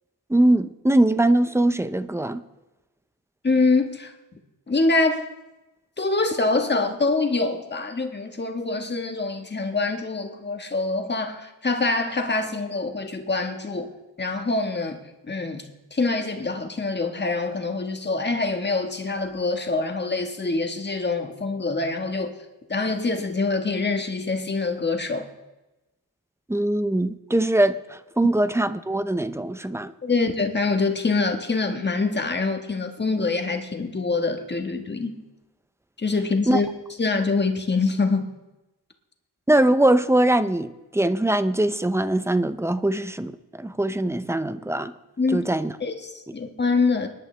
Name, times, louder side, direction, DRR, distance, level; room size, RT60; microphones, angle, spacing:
voice 1, 0.3-2.4 26.5-29.9 36.5-36.6 39.5-44.9 45.3-45.7, right 1 dB, 5° right, 12 dB, 0.5 m, -22 dB
voice 2, 3.4-4.1 4.7-5.2 6.0-13.9 14.2-22.4 22.7-25.3 30.0-35.2 36.0-36.7 37.0-38.3 45.2-45.4 45.8-47.1, left 3 dB, 25° left, 5 dB, 1.4 m, -25 dB
25.5 x 11.0 x 3.3 m, 1.1 s
wide cardioid pair, 135°, 40 cm